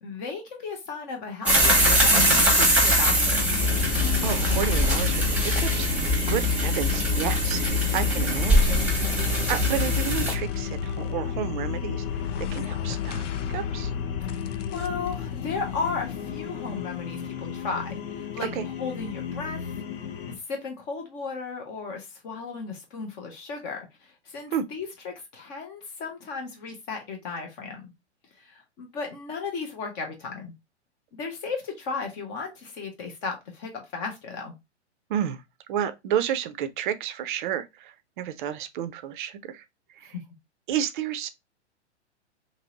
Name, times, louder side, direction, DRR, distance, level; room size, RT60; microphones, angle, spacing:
voice 1, 0.0-3.5 14.2-19.7 20.3-27.9 28.3-30.5 31.1-34.5 40.1-40.2, left 4 dB, 15° left, 0.3 m, -35 dB
sound 1, 1.5-10.3, equal, 5° right, 0.8 m, -22 dB
sound 2, 3.0-17.6, left 7 dB, 85° left, 0.5 m, -32 dB
sound 3, 3.5-20.4, left 8 dB, 45° left, 0.8 m, -36 dB
voice 2, 3.9-5.9 6.3-8.8 9.5-13.9 18.5-18.7 24.5-24.7 35.1-35.4 35.7-39.6 40.0-40.1 40.7-41.3, right 9 dB, 45° right, 0.5 m, -31 dB
2.9 x 2.7 x 2.8 m
hypercardioid pair, 120°, 36 cm